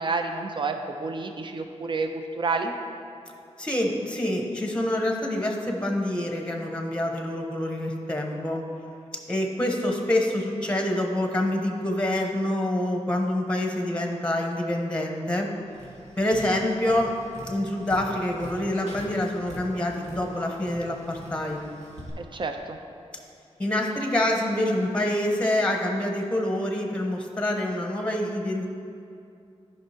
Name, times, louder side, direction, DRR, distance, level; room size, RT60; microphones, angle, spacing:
voice 1, 0.0-2.7 22.2-22.8, right 4 dB, 45° right, 5 dB, 0.6 m, -29 dB
voice 2, 3.6-8.6 9.3-15.5 16.2-17.1 17.5-21.6 23.6-28.7, left 1 dB, 10° left, 1 dB, 1.1 m, -26 dB
Tap, 15.7-22.1, right 1 dB, 80° right, 1.8 m, -43 dB
14.0 x 5.4 x 2.9 m, 2.6 s
wide cardioid pair, 85°, 11 cm